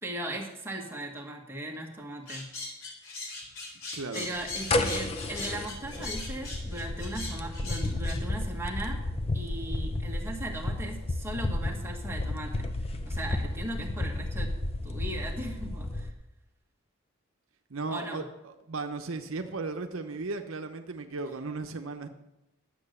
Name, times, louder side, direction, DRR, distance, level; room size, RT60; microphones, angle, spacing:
voice 1, 0.0-2.5 4.1-9.0 9.3-12.7 13.0-14.5 14.8-16.1 17.9-18.2, right 1 dB, 10° right, 1 dB, 1.6 m, -38 dB
sound 1, 2.3-8.2, left 3 dB, 75° left, 3.5 m, -39 dB
voice 2, 3.9-4.3 17.7-22.1, right 3 dB, 75° right, 7 dB, 0.8 m, -36 dB
sound 2, 4.4-16.1, left 2 dB, 30° left, 0.7 m, -32 dB
10.5 x 7.8 x 6.7 m, 0.95 s
head